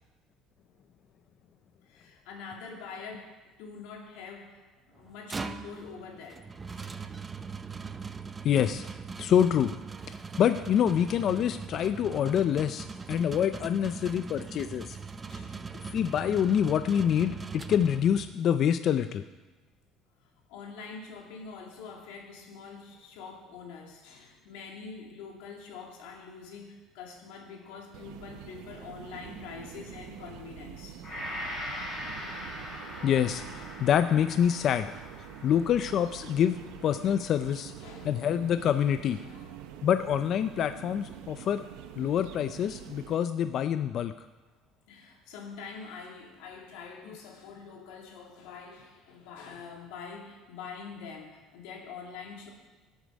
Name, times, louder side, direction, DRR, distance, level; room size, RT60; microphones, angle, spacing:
voice 1, 1.8-7.0 13.0-13.2 13.9-14.0 15.3-15.7 20.5-31.0 37.8-38.3 39.0-39.6 44.9-52.5, left 5 dB, 90° left, 1 dB, 2.6 m, -45 dB
sound 1, 5.0-18.4, right 4 dB, 15° right, 0.5 m, -40 dB
voice 2, 8.4-8.9 9.2-9.7 10.4-15.0 15.9-19.2 33.0-34.9 35.4-37.7 38.0-39.2 39.8-41.7 42.0-44.1, left 9 dB, 40° left, 10 dB, 0.4 m, -26 dB
sound 2, 27.9-43.1, right 10 dB, 90° right, 0.8 m, -46 dB
Gong, 31.0-39.3 39.8-39.9, left 1 dB, 25° left, 5.0 m, -42 dB
17.5 x 8.0 x 5.2 m, 1.2 s
cardioid pair, 155°, 0 cm